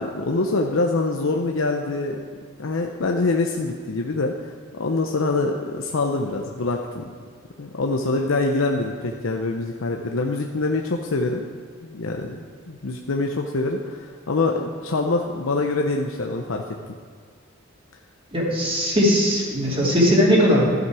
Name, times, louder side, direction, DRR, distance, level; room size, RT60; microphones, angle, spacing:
voice 1, 0.0-2.2 2.6-7.0 7.6-11.4 11.8-16.6, left 3 dB, 80° left, 2 dB, 0.7 m, -25 dB
voice 2, 18.3-20.6, equal, 30° right, -4 dB, 2.6 m, -19 dB
13.0 x 8.0 x 4.8 m, 2.1 s
head